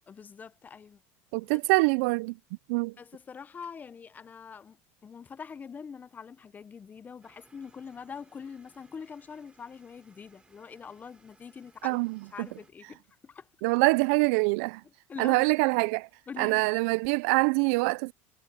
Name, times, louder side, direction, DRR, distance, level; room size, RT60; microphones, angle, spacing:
voice 1, 0.1-1.0 1.5-1.6 3.0-12.0 12.3-13.5 15.1-15.5 16.3-16.7, left 6 dB, 25° left, 0.8 m, -44 dB
voice 2, 1.3-2.4 2.7-2.9 11.8-12.5 13.6-14.8 15.2-16.1 16.4-18.1, right 27 dB, 75° right, 0.4 m, -25 dB
sound 1, 7.2-12.7, right 3 dB, 15° right, 3.0 m, -63 dB
supercardioid pair, 120°, 7 cm